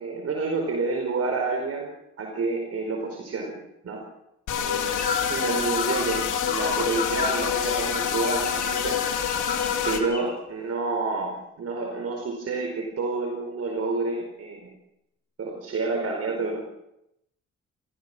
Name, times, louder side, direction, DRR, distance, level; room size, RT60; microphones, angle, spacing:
voice 1, 0.0-1.9 2.2-4.0 4.5-9.0 9.8-14.7 15.4-16.6, right 3 dB, 55° right, 2 dB, 4.9 m, -29 dB
sound 1, 4.5-10.0, left 8 dB, 85° left, 3.2 m, -27 dB
sound 2, 5.0-10.3, left 4 dB, 30° left, 7.4 m, -33 dB
29.0 x 15.0 x 6.2 m, 0.84 s
cardioid pair, 90°, 30 cm